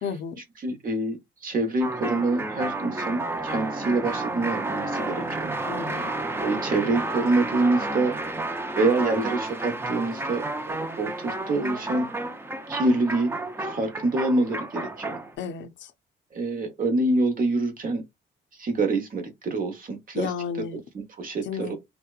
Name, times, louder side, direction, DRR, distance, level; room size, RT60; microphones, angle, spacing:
voice 1, 0.0-0.4 5.7-6.1 15.4-15.9 20.2-20.8 21.4-21.8, left 6 dB, 70° left, 0.5 m, -32 dB
voice 2, 0.6-1.2 1.4-5.5 5.9-6.1 6.4-8.2 8.8-12.1 12.7-13.3 13.6-15.2 16.3-18.0 18.6-20.3 20.9-21.8, right 2 dB, 45° right, 0.9 m, -26 dB
sound 1, 1.8-15.3, right 2 dB, 10° right, 0.4 m, -31 dB
2.8 x 2.1 x 2.3 m
cardioid pair, 90°, 20 cm